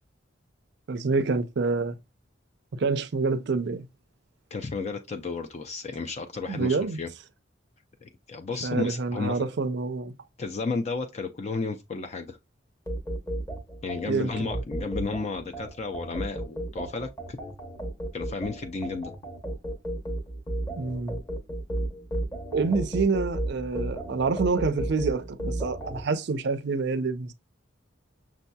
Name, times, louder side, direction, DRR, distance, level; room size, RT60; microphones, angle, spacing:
voice 1, 0.9-2.0 2.7-3.9 6.5-7.0 8.6-10.1 14.1-14.5 20.8-21.2 22.5-27.3, right 4 dB, 65° right, 0.5 m, -27 dB
voice 2, 4.5-7.1 8.0-9.5 10.4-12.4 13.8-17.4 18.1-19.1, left 4 dB, 35° left, 0.4 m, -33 dB
sound 1, 12.9-26.0, right 1 dB, 20° left, 0.9 m, -33 dB
6.1 x 2.7 x 2.2 m
head